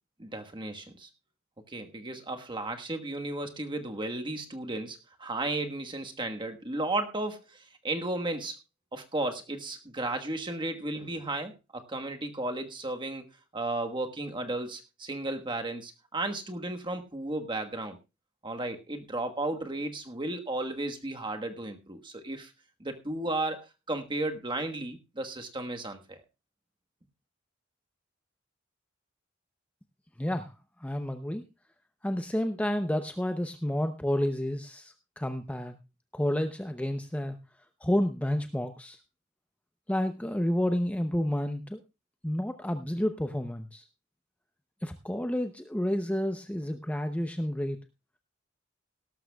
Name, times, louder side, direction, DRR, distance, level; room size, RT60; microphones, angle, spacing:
voice 1, 0.2-1.1 1.7-8.6 8.9-13.2 13.5-18.0 18.4-22.5 22.8-26.2, right 2 dB, 25° right, 5 dB, 1.4 m, -34 dB
voice 2, 30.2-30.5 30.8-31.4 32.0-35.8 36.1-37.4 37.8-39.0 39.9-41.8 42.2-43.8 44.8-47.8, left 1 dB, 5° left, 7 dB, 0.7 m, -30 dB
17.5 x 12.5 x 2.3 m, 0.26 s
head